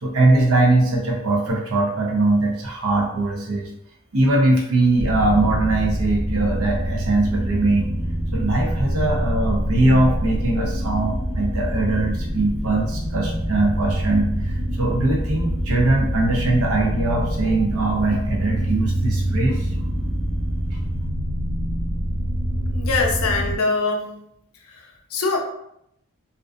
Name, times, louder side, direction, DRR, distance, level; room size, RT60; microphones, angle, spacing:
voice 1, 0.0-3.7 4.1-7.9 8.3-19.7, right 2 dB, 80° right, -1 dB, 0.6 m, -21 dB
sound 1, 5.0-23.6, equal, 20° right, 1.0 m, -25 dB
voice 2, 22.7-24.2 24.6-25.4, left 3 dB, 80° left, 2 dB, 0.5 m, -23 dB
2.4 x 2.2 x 2.4 m, 0.77 s
head